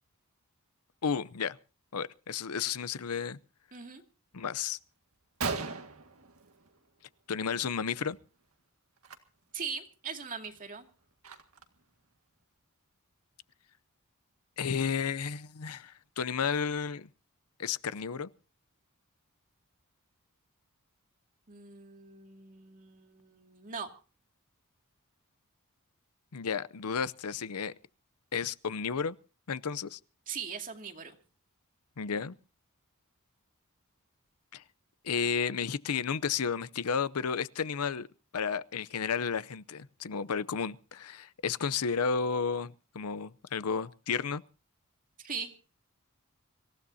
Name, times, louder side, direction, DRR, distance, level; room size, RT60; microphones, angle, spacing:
voice 1, 1.0-1.6 1.9-3.4 4.3-4.8 7.3-8.2 14.6-17.1 17.6-18.3 26.3-27.7 28.3-29.2 29.5-30.0 32.0-32.3 34.5-34.6 35.0-38.1 38.3-44.4, left 6 dB, 85° left, 0.7 m, -32 dB
voice 2, 3.7-4.0 9.5-10.9 21.5-23.9 30.3-31.2 45.2-45.5, right 6 dB, 40° right, 2.3 m, -40 dB
Gunshot gunfire, 4.7-4.8 5.1-5.2 5.4-7.0 7.3-7.7 7.9-8.2 9.0-9.2 9.7-9.8 10.2-11.8, right 4 dB, 70° right, 1.9 m, -38 dB
26.0 x 15.5 x 2.8 m
head